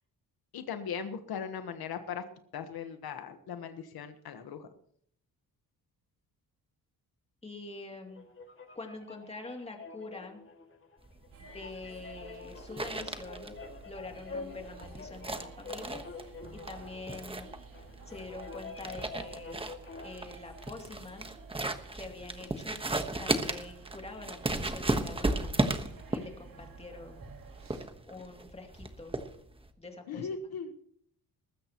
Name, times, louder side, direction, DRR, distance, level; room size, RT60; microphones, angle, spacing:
voice 1, 0.5-2.2 2.5-4.7 30.1-30.7, left 6 dB, 70° left, 8 dB, 1.4 m, -38 dB
voice 2, 7.4-8.3 8.7-10.4 11.4-13.5 13.8-17.5 18.1-19.6 20.0-21.3 21.9-22.8 23.2-25.5 26.1-27.2 28.1-29.2 29.8-30.5, left 3 dB, 15° left, 2 dB, 2.7 m, -45 dB
sound 1, 8.1-20.2, left 4 dB, 30° left, 2.2 m, -47 dB
sound 2, 11.0-29.7, right 2 dB, 15° right, 1.3 m, -35 dB
sound 3, 11.3-27.9, right 5 dB, 60° right, 2.5 m, -52 dB
19.5 x 15.5 x 3.0 m, 0.63 s
cardioid pair, 135°, 38 cm